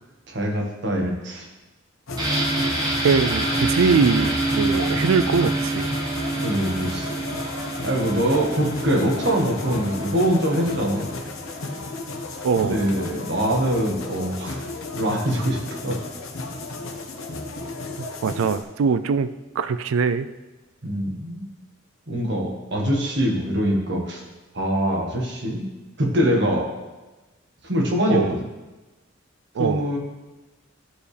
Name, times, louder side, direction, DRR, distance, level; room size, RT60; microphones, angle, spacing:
voice 1, 0.3-1.5 6.4-7.1 7.8-11.1 12.6-14.6 15.0-16.0 20.8-21.5 22.1-24.2 24.5-25.6 26.0-26.7 27.6-28.4 29.6-30.0, equal, 60° right, 0 dB, 1.5 m, -23 dB
sound 1, 2.1-18.6, left 2 dB, 90° left, 1.0 m, -34 dB
sound 2, 2.2-11.8 12.1-12.2, right 2 dB, 20° right, 1.3 m, -27 dB
voice 2, 3.0-5.9 12.4-12.8 18.2-19.3 19.6-20.3 28.1-28.4 29.6-29.9, right 5 dB, 85° right, 12 dB, 0.4 m, -22 dB
13.0 x 4.8 x 3.3 m, 1.1 s
head